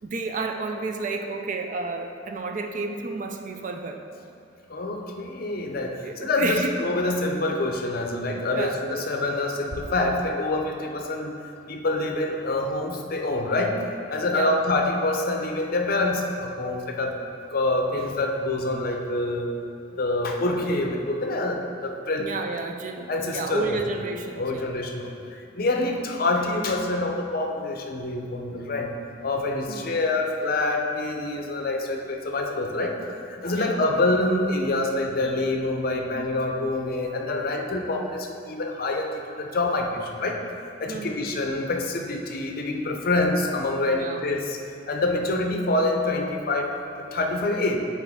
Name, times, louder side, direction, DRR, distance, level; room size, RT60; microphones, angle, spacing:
voice 1, 0.0-4.0 6.0-6.8 7.9-8.0 8.5-8.9 14.3-14.6 22.2-24.7 29.7-30.1 33.5-33.8 40.9-41.2 42.8-43.0 43.9-44.3, right 3 dB, 45° right, 4 dB, 0.4 m, -31 dB
voice 2, 4.7-11.3 11.7-13.8 14.1-17.2 17.5-19.5 19.9-22.3 23.1-23.8 24.4-25.1 25.5-28.9 29.2-40.4 40.8-44.6 44.9-47.8, left 2 dB, 50° left, 3 dB, 0.6 m, -26 dB
8.2 x 4.1 x 3.6 m, 2.5 s
head